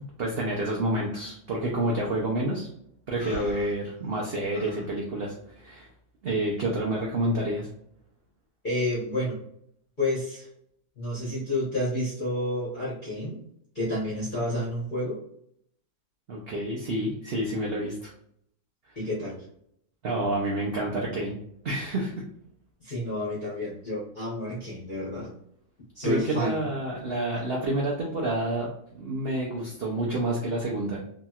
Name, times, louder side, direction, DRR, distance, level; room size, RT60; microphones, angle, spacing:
voice 1, 0.2-2.7 3.1-5.9 6.2-7.7 16.3-18.1 20.0-21.4 21.6-22.1 26.0-31.0, right 1 dB, 85° right, -2 dB, 0.5 m, -29 dB
Breathing, 3.2-4.9, equal, 75° left, 1.2 m, -41 dB
voice 2, 8.6-9.4 10.0-10.5 11.0-13.4 13.7-15.2 19.0-19.4 22.8-25.3 25.9-26.6, left 1 dB, 35° left, -9 dB, 1.0 m, -30 dB
2.9 x 2.8 x 2.3 m, 0.72 s
omnidirectional pair, 1.7 m